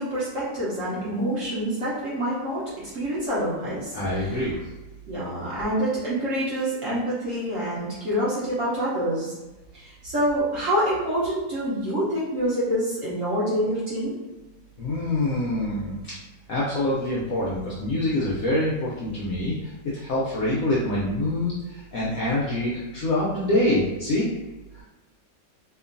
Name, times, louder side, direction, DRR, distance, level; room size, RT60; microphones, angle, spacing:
voice 1, 0.0-2.6 2.9-4.5 5.1-9.4 9.7-14.1, equal, 60° right, -8 dB, 0.9 m, -26 dB
voice 2, 3.9-4.6 14.8-16.1 16.5-24.3 24.7-24.8, left 1 dB, 75° left, -6 dB, 0.8 m, -25 dB
2.9 x 2.5 x 2.5 m, 1.1 s
omnidirectional pair, 2.0 m